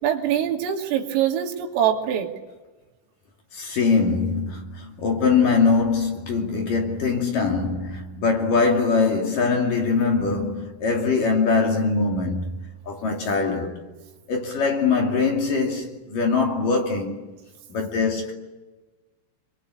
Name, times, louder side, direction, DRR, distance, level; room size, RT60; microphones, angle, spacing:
voice 1, 0.0-2.3, right 10 dB, 80° right, 5.2 m, -23 dB
voice 2, 3.5-13.7 14.3-17.2 17.7-18.3, left 4 dB, 50° left, 3.7 m, -22 dB
28.0 x 24.0 x 8.7 m
omnidirectional pair, 5.9 m